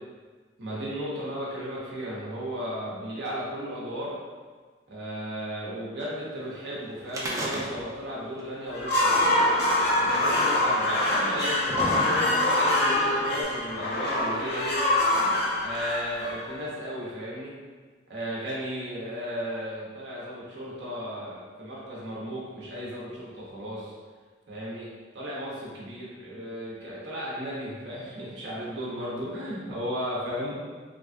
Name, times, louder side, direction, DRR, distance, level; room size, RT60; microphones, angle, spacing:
voice 1, 0.6-4.1 4.9-9.4 10.0-14.8 15.6-17.5 18.1-23.9 24.5-24.9 25.1-30.6, equal, 70° right, -6 dB, 0.9 m, -35 dB
sound 1, 7.1-8.1 8.4-8.5 9.5-9.6 10.5-10.6 11.2-12.6 13.4-13.5, right 1 dB, 15° right, 0.4 m, -32 dB
sound 2, 8.7-16.8, left 1 dB, 60° left, 0.5 m, -25 dB
3.3 x 2.6 x 2.2 m, 1.4 s
head